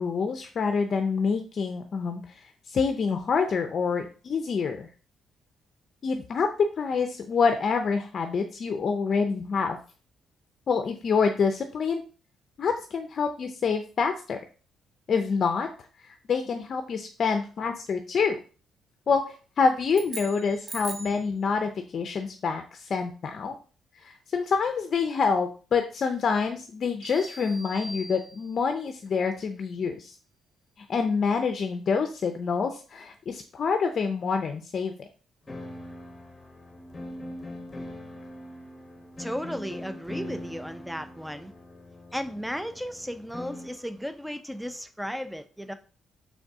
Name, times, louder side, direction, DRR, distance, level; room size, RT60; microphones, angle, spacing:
voice 1, 0.0-4.9 6.0-9.8 10.7-12.0 12.6-14.4 15.1-15.7 16.0-18.4 19.1-23.6 24.0-30.1 30.9-34.9, left 5 dB, 50° left, 0.5 m, -27 dB
sound 1, 19.9-21.3, right 3 dB, 45° right, 0.6 m, -39 dB
sound 2, 27.0-28.8, equal, 65° right, 1.2 m, -43 dB
sound 3, 35.5-43.9, left 1 dB, 20° left, 0.9 m, -41 dB
voice 2, 39.2-41.5 42.1-45.7, equal, ahead, 0.4 m, -35 dB
3.9 x 3.5 x 3.5 m
cardioid pair, 90°, 0 cm